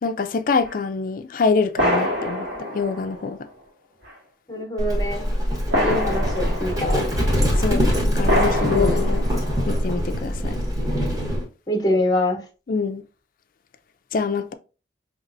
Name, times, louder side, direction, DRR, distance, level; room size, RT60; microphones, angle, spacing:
voice 1, 0.0-2.5 2.7-3.4 7.6-7.9 8.1-9.2 9.7-10.6 12.7-13.0 14.1-14.5, left 4 dB, 50° left, 0.4 m, -24 dB
sound 1, 0.6-0.7 1.8-3.5 4.0-4.1 5.7-7.3 8.2-9.8, left 1 dB, 85° right, 1.7 m, -26 dB
voice 2, 4.5-5.2 5.8-7.1 8.7-9.0 11.7-12.4, left 1 dB, 20° left, 0.9 m, -24 dB
Livestock farm animals working animals, 4.8-11.4, equal, 20° right, 1.2 m, -23 dB
5.3 x 3.0 x 2.5 m
head